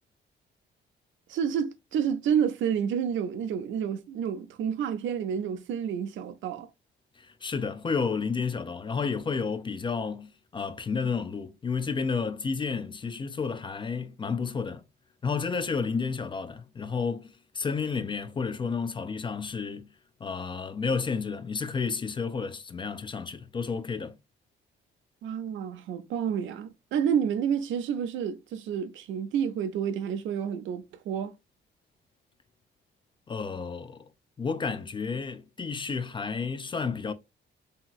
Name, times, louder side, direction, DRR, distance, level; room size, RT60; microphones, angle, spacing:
voice 1, 1.3-6.7 25.2-31.3, right 8 dB, 75° right, 0.5 m, -29 dB
voice 2, 7.2-14.8 15.2-19.9 20.2-24.2 33.3-34.1 34.4-37.1, left 5 dB, 25° left, 0.3 m, -31 dB
2.9 x 2.8 x 2.3 m
cardioid pair, 90°, 20 cm